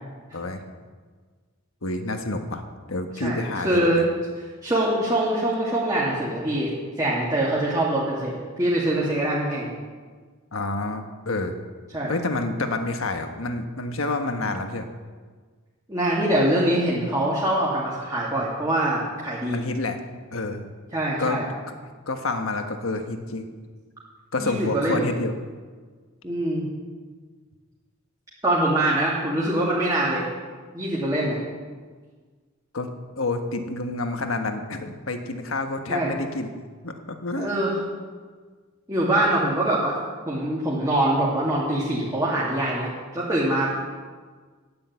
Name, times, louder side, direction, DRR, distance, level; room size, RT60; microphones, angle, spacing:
voice 1, 0.3-0.6 1.8-2.6 2.9-4.0 10.5-11.5 12.1-14.9 19.5-20.0 20.3-20.7 21.2-21.4 21.7-21.8 22.1-23.5 24.3-25.3 32.7-36.5 36.8-37.5, left 2 dB, 80° left, 6 dB, 1.3 m, -28 dB
voice 2, 3.1-4.0 4.6-6.7 7.0-8.3 8.6-9.7 11.9-12.1 15.9-19.6 20.9-21.5 24.4-25.0 26.2-26.6 28.4-30.2 30.7-31.4 35.9-36.1 37.3-37.7 38.9-40.0 40.3-43.8, right 1 dB, 20° right, -6 dB, 2.3 m, -24 dB
10.5 x 10.0 x 8.2 m, 1.5 s
head